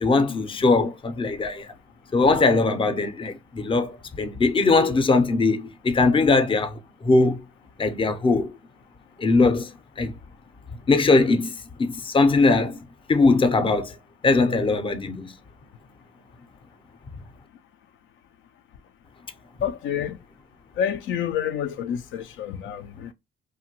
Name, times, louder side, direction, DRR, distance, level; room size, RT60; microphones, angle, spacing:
voice 1, 0.0-1.7 2.1-7.4 7.8-8.5 9.2-9.7 10.0-10.1 10.9-11.5 11.8-12.8 13.1-13.9 14.2-15.3, left 3 dB, 25° left, 0.5 m, -20 dB
voice 2, 19.6-20.2 20.8-23.1, left 9 dB, 85° left, 0.4 m, -28 dB
2.8 x 2.1 x 2.8 m
cardioid pair, 90°, 20 cm